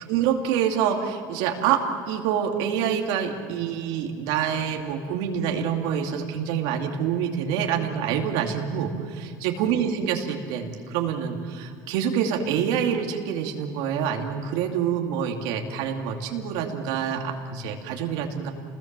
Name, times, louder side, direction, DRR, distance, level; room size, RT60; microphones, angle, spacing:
voice 1, 0.1-1.8 2.1-18.5, right 8 dB, 80° right, 2 dB, 2.6 m, -26 dB
29.0 x 20.5 x 7.5 m, 2.1 s
cardioid pair, 125°, 9 cm